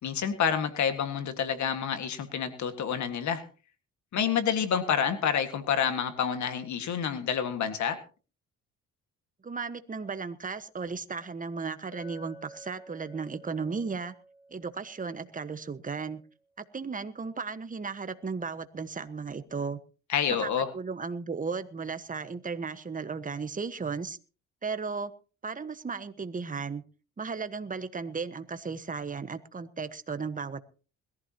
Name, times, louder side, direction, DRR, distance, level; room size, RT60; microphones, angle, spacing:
voice 1, 0.0-3.4 4.1-8.0 20.1-20.7, left 7 dB, 70° left, 9 dB, 1.9 m, -28 dB
voice 2, 9.4-14.1 14.5-16.2 16.6-19.8 20.3-24.2 24.6-25.1 25.4-26.8 27.2-30.6, right 5 dB, 25° right, 11 dB, 1.3 m, -35 dB
Chink clink, 11.9-16.4, right 1 dB, 90° left, 5.4 m, -53 dB
21.0 x 14.5 x 3.0 m, 0.36 s
cardioid pair, 90°, 30 cm